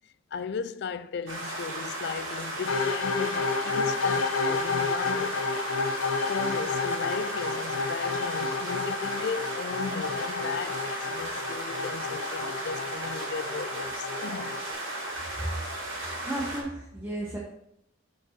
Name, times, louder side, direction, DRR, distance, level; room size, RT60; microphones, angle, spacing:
voice 1, 0.3-5.5 6.3-14.6, left 5 dB, 55° left, 0.3 m, -36 dB
sound 1, 1.3-16.6, right 1 dB, 75° right, 2.4 m, -35 dB
sound 2, 2.7-14.7, left 4 dB, 85° left, 0.7 m, -31 dB
voice 2, 15.4-17.4, right 1 dB, 10° right, 0.9 m, -34 dB
6.7 x 4.9 x 4.3 m
head